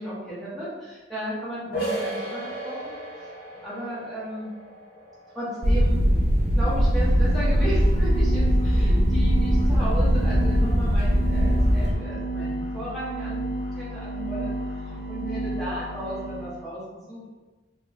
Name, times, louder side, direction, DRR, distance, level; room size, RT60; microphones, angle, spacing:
voice 1, 0.0-2.9 3.6-4.5 5.3-6.1 6.5-14.5 15.1-17.3, equal, ahead, -10 dB, 0.9 m, -34 dB
sound 1, 1.7-7.2, right 1 dB, 50° left, 1.2 m, -36 dB
sound 2, 5.6-11.9, equal, 35° right, 0.4 m, -20 dB
sound 3, 6.9-16.6, right 1 dB, 55° right, 0.9 m, -32 dB
3.0 x 2.0 x 3.8 m, 1.2 s
head